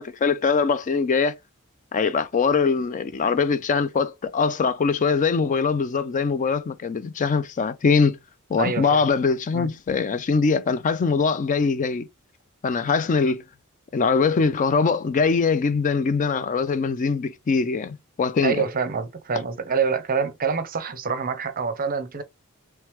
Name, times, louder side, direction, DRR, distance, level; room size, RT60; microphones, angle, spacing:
voice 1, 0.0-1.4 1.9-8.2 8.5-12.1 12.6-13.4 13.9-18.6, left 5 dB, 35° left, 0.4 m, -22 dB
voice 2, 8.6-9.0 9.5-9.7 18.4-22.2, right 5 dB, 40° right, 0.6 m, -26 dB
3.2 x 3.2 x 3.1 m
head